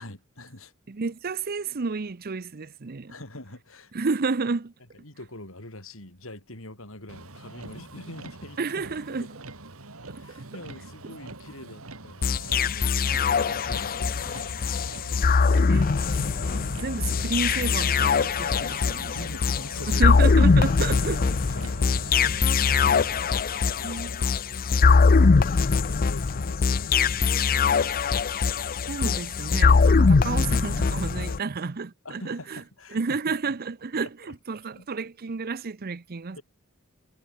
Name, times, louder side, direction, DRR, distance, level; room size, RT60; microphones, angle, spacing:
voice 1, 0.0-0.7 3.1-3.9 5.0-9.3 10.1-14.4 19.1-20.7 21.2-22.6 23.1-27.9 31.1-31.4 32.0-33.3 34.0-34.1 34.8-34.9 36.3-36.4, left 1 dB, 70° left, 7.3 m, -44 dB
voice 2, 0.9-3.1 3.9-4.7 8.6-9.3 10.1-10.5 15.7-19.2 19.9-21.4 23.8-24.2 28.9-32.6 32.9-36.4, right 4 dB, 45° right, 0.7 m, -31 dB
Motor vehicle (road), 7.1-23.2, right 2 dB, 80° right, 3.3 m, -44 dB
sound 1, 12.2-31.4, left 4 dB, 40° left, 0.5 m, -22 dB
head